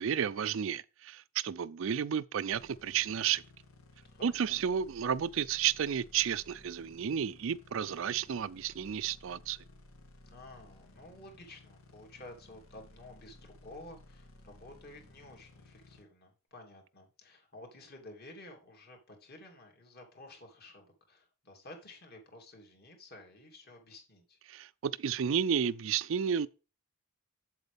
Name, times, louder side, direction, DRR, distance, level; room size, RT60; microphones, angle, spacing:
voice 1, 0.0-3.4 4.2-9.6 24.5-26.5, right 8 dB, 65° right, 0.4 m, -32 dB
sound 1, 2.5-16.0, left 1 dB, 80° left, 2.1 m, -57 dB
voice 2, 4.1-4.6 10.3-24.4, left 1 dB, 45° left, 3.0 m, -52 dB
8.1 x 7.9 x 3.5 m
head